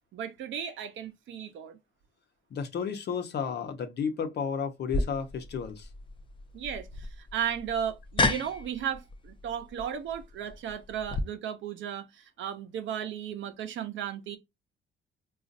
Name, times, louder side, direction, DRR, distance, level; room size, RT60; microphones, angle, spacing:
voice 1, 0.1-1.8 6.5-14.4, right 9 dB, 70° right, 0.8 m, -35 dB
voice 2, 2.5-5.9, left 6 dB, 55° left, 0.8 m, -32 dB
sound 1, 4.9-11.2, left 2 dB, 25° left, 0.5 m, -33 dB
3.9 x 2.5 x 2.5 m
cardioid pair, 90°, 20 cm